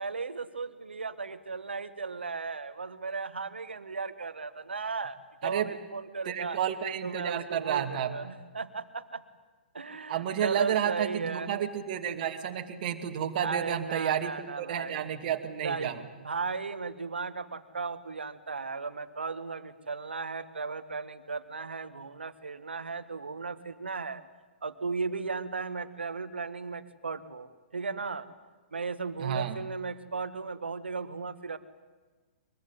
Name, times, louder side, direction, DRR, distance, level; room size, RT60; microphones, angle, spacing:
voice 1, 0.0-6.6 7.0-9.2 9.7-11.5 13.4-15.0 15.6-15.9 16.2-24.2 24.6-28.3 28.7-31.6, right 4 dB, 75° right, 12 dB, 1.7 m, -36 dB
voice 2, 6.3-8.1 10.1-16.0 29.2-29.6, right 9 dB, 45° right, 5 dB, 2.5 m, -31 dB
23.0 x 22.5 x 9.3 m, 1.4 s
figure-of-eight pair, 115°, 6 cm